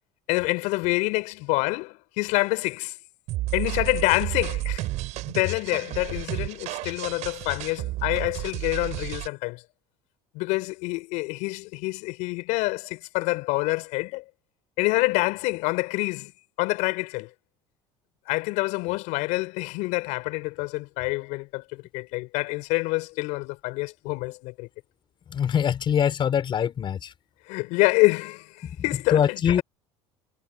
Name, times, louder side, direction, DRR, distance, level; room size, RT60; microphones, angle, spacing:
voice 1, 0.3-2.9 3.5-4.9 5.3-9.6 10.3-14.2 14.8-16.3 16.6-17.3 18.3-24.7 27.5-29.6, left 24 dB, 75° left, 5.8 m, -27 dB
sound 1, 3.3-9.3, right 18 dB, 65° right, 7.8 m, -32 dB
voice 2, 25.3-27.1 28.6-28.7 29.1-29.6, left 8 dB, 40° left, 4.9 m, -23 dB
supercardioid pair, 110°, 13 cm